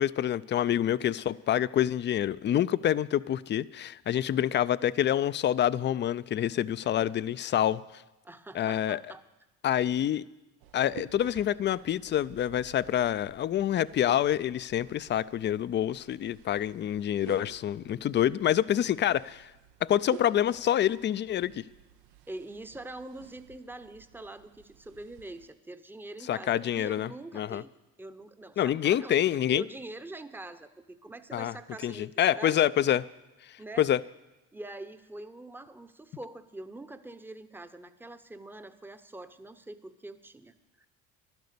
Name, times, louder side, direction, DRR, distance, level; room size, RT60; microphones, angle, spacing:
voice 1, 0.0-7.8 8.5-9.0 9.6-10.2 10.7-19.5 19.8-21.6 26.3-27.1 27.3-27.6 28.6-29.6 31.3-31.5 31.8-33.1 33.8-34.0, left 11 dB, 30° left, 18 dB, 0.4 m, -27 dB
voice 2, 8.2-9.2 22.3-27.7 28.0-32.6 33.6-33.9 34.5-40.9, right 2 dB, 5° right, 10 dB, 0.8 m, -44 dB
sound 1, 10.6-25.5, right 11 dB, 80° right, 0.7 m, -52 dB
11.5 x 10.5 x 6.8 m, 1.0 s
supercardioid pair, 80°, 36 cm